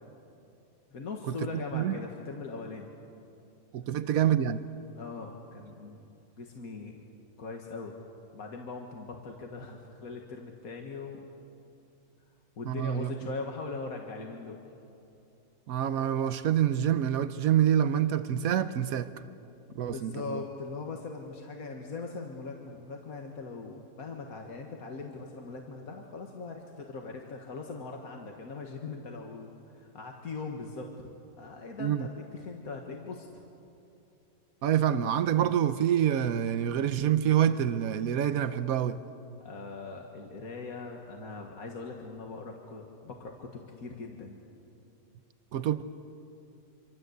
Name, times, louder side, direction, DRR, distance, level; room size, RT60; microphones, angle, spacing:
voice 1, 0.9-2.9 4.9-6.1 6.4-7.1 7.4-7.9 8.3-11.2 12.6-14.6 19.9-30.9 31.4-33.3 39.4-44.4, left 4 dB, 85° left, 2.1 m, -40 dB
voice 2, 3.7-4.6 12.7-13.1 15.7-19.1 19.8-20.4 31.8-32.1 34.6-39.0 45.5-45.8, right 10 dB, 85° right, 1.3 m, -26 dB
26.0 x 26.0 x 8.0 m
omnidirectional pair, 1.5 m